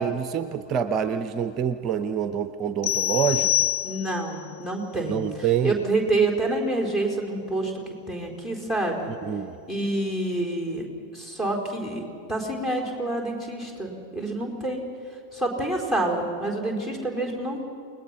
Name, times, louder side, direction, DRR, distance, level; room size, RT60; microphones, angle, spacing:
voice 1, 0.0-3.7 5.1-5.8 9.2-9.5, right 8 dB, 30° right, 11 dB, 0.7 m, -26 dB
sound 1, 2.8-4.4, left 13 dB, 40° left, 0.5 m, -25 dB
voice 2, 3.8-5.2 5.6-9.1 9.7-10.9 11.1-14.9 15.3-17.6, right 2 dB, 15° left, -1 dB, 4.5 m, -27 dB
29.0 x 20.0 x 5.9 m, 2.5 s
figure-of-eight pair, 90°, 0 cm